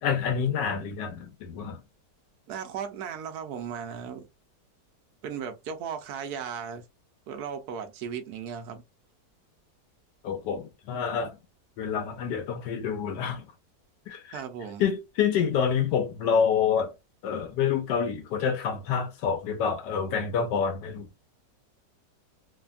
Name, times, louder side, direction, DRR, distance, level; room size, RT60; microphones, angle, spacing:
voice 1, 0.0-1.8 10.2-11.4 11.8-13.5 14.1-14.4 14.8-16.9 17.2-21.2, left 7 dB, 85° left, 1.3 m, -27 dB
voice 2, 2.5-4.3 5.2-6.8 7.3-8.8 14.3-14.8, right 7 dB, 70° right, 1.1 m, -36 dB
3.2 x 2.1 x 2.4 m
omnidirectional pair, 1.9 m